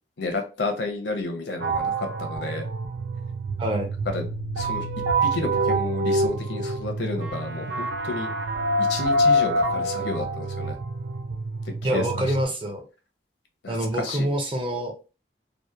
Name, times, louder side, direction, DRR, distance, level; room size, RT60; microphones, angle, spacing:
voice 1, 0.2-2.6 4.1-4.3 4.6-4.9 5.2-8.3 8.8-10.8 11.8-12.3 13.6-14.3, left 3 dB, 75° left, 4 dB, 0.6 m, -31 dB
sound 1, 1.6-12.4, right 1 dB, 85° right, 0.5 m, -26 dB
voice 2, 3.6-3.9 11.8-12.8 13.7-14.9, right 1 dB, 30° right, 2 dB, 0.5 m, -26 dB
2.8 x 2.1 x 2.2 m, 0.33 s
head